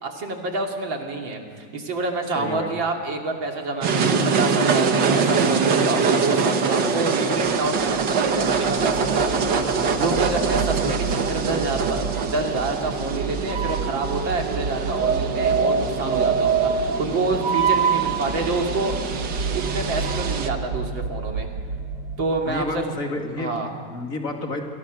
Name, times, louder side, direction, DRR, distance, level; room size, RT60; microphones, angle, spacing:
voice 1, 0.0-19.1 19.5-21.5 22.2-22.8 23.4-23.7, right 2 dB, 85° right, 2 dB, 3.4 m, -27 dB
voice 2, 2.3-2.7 22.5-23.6 23.9-24.6, left 2 dB, 45° left, 2 dB, 2.8 m, -29 dB
sound 1, 3.8-20.5, right 5 dB, 70° right, 2.0 m, -23 dB
sound 2, 7.4-22.2, right 4 dB, 50° right, 2.1 m, -32 dB
29.5 x 23.0 x 6.4 m, 2.1 s
omnidirectional pair, 2.0 m